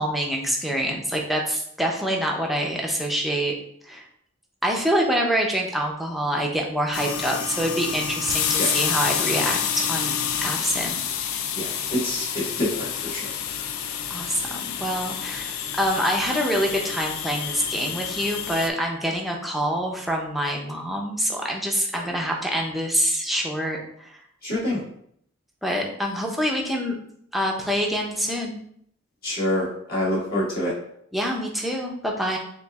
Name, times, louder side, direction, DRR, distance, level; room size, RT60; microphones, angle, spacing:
voice 1, 0.0-3.5 3.8-4.0 4.6-11.0 14.1-24.2 25.6-27.0 27.3-28.6 31.1-32.4, equal, ahead, -1 dB, 0.5 m, -26 dB
sound 1, 6.9-18.7, left 8 dB, 80° left, 0.4 m, -28 dB
voice 2, 11.5-13.3 24.4-24.8 29.2-30.7, left 1 dB, 45° left, -6 dB, 1.5 m, -26 dB
6.8 x 2.4 x 2.3 m, 0.67 s
head